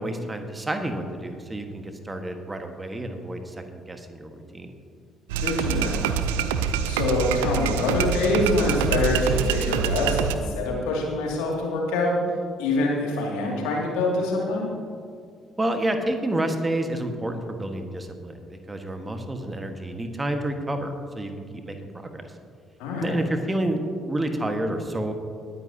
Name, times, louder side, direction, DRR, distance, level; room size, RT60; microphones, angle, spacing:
voice 1, 0.0-4.7 15.6-22.3 23.0-25.1, right 1 dB, 20° right, 5 dB, 1.5 m, -29 dB
sound 1, 5.3-10.4, right 7 dB, 75° right, 0.5 m, -25 dB
voice 2, 5.4-6.1 6.9-12.2 12.6-14.7 22.8-23.2, left 2 dB, 70° left, -2 dB, 2.5 m, -25 dB
20.5 x 9.9 x 2.9 m, 2.3 s
figure-of-eight pair, 45°, 0 cm